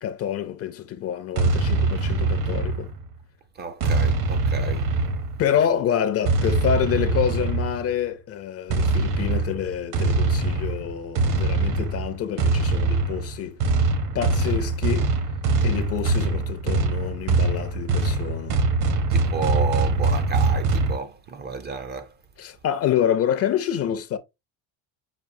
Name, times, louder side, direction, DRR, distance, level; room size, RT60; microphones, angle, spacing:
voice 1, 0.0-2.9 5.4-13.6 14.1-15.1 15.6-18.6 22.4-24.2, left 9 dB, 40° left, 0.4 m, -27 dB
sound 1, 1.4-3.1 3.8-5.5 6.3-7.9 8.7-21.0, right 3 dB, 55° right, 0.9 m, -23 dB
voice 2, 3.6-4.9 19.1-22.1, right 4 dB, 30° right, 0.4 m, -31 dB
5.9 x 2.4 x 2.6 m
cardioid pair, 160°, 38 cm